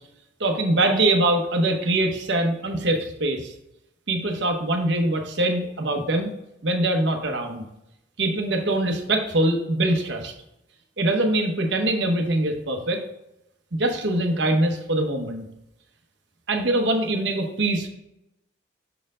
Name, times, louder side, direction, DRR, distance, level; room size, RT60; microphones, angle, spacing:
voice 1, 0.4-3.5 4.1-6.3 6.6-7.6 8.2-10.3 11.0-13.0 13.7-15.4 16.5-17.9, right 1 dB, 65° right, 3 dB, 1.0 m, -23 dB
6.7 x 4.4 x 3.7 m, 0.85 s
head